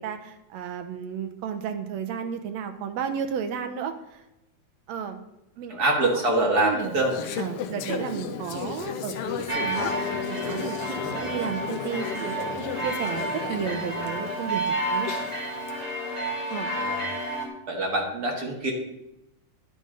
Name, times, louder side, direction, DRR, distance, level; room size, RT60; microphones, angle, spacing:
voice 1, 0.0-4.2 4.9-5.2 5.6-5.7 6.0-6.2 6.6-6.9 7.4-10.0 10.3-14.6 14.9-15.1 16.5-16.7, right 7 dB, 75° right, 8 dB, 2.0 m, -33 dB
voice 2, 5.7-7.1 11.0-11.2 16.8-17.0 17.7-18.7, right 2 dB, 45° right, 1 dB, 1.5 m, -25 dB
Conversation / Chatter, 6.8-15.7, left 7 dB, 65° left, 1.5 m, -34 dB
sound 1, 9.5-17.5, right 1 dB, 15° right, 2.2 m, -31 dB
11.0 x 9.4 x 3.8 m, 0.90 s
omnidirectional pair, 3.3 m